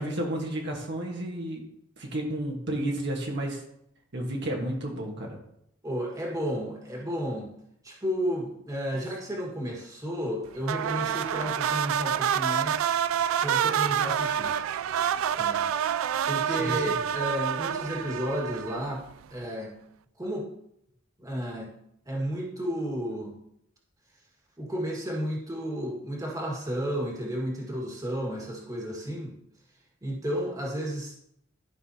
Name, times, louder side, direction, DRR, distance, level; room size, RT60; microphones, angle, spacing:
voice 1, 0.0-1.6 2.0-3.6 4.1-5.4 16.5-16.9, right 1 dB, 60° right, 0 dB, 1.4 m, -32 dB
voice 2, 5.8-7.5 7.8-12.9 13.4-14.5 15.4-15.7 16.3-19.7 20.2-20.5 21.2-21.7 22.0-23.3 24.6-29.3 30.0-31.2, equal, 15° right, -2 dB, 1.7 m, -32 dB
sound 1, 10.6-19.1, right 9 dB, 85° right, 0.3 m, -27 dB
12.0 x 5.4 x 2.8 m, 0.75 s
head